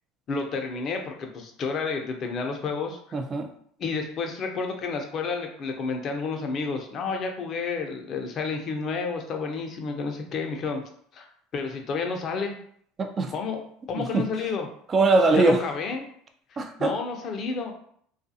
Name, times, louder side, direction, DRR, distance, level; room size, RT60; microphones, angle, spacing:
voice 1, 0.3-3.0 3.8-10.8 11.1-11.3 11.5-12.5 13.3-13.6 13.9-14.7 15.3-16.1 16.5-17.7, left 4 dB, 45° left, 3 dB, 0.6 m, -30 dB
voice 2, 3.1-3.5 13.0-13.3 14.0-14.2 14.9-15.6 16.6-16.9, right 3 dB, 30° right, 5 dB, 0.4 m, -21 dB
2.4 x 2.3 x 2.6 m, 0.63 s
hypercardioid pair, 85°, 0 cm